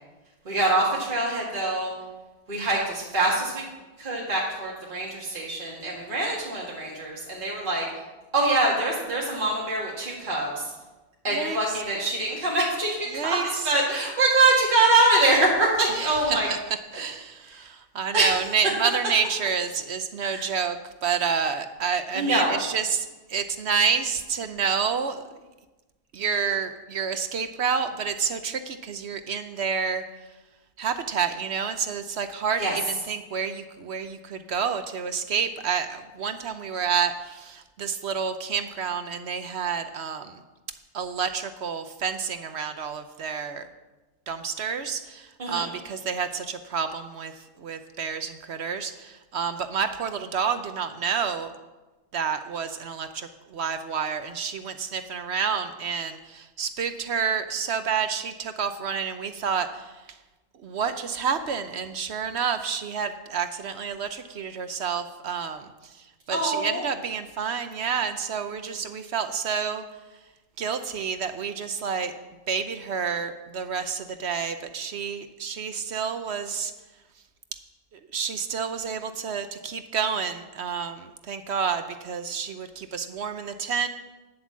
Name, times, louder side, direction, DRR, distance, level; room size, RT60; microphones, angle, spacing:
voice 1, 0.5-1.9 2.5-3.6 4.0-7.9 8.3-10.7 11.2-13.0 13.2-16.5 18.1-18.3 20.2-20.4 22.1-22.6 32.6-32.8 45.4-45.6 66.3-66.8, right 2 dB, 35° right, -5 dB, 2.1 m, -24 dB
voice 2, 11.3-11.8 13.1-13.7 15.9-25.2 26.1-30.0 30.8-40.4 40.9-43.7 44.3-51.5 52.1-60.2 60.5-69.8 70.6-72.1 72.5-76.7 77.9-83.9, right 6 dB, 60° right, 9 dB, 0.8 m, -29 dB
9.7 x 7.6 x 7.3 m, 1.1 s
omnidirectional pair, 1.5 m